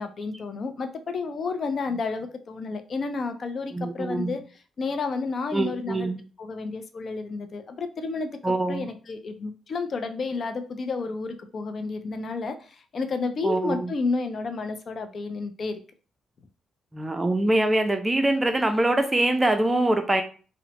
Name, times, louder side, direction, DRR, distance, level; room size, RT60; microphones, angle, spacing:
voice 1, 0.0-4.4 4.8-6.1 6.4-15.8, left 4 dB, 50° left, 0.4 m, -31 dB
voice 2, 3.7-4.3 5.5-6.2 8.4-8.9 13.4-13.9 16.9-20.2, right 1 dB, 15° right, 0.4 m, -24 dB
2.8 x 2.0 x 2.9 m
cardioid pair, 90°, 0 cm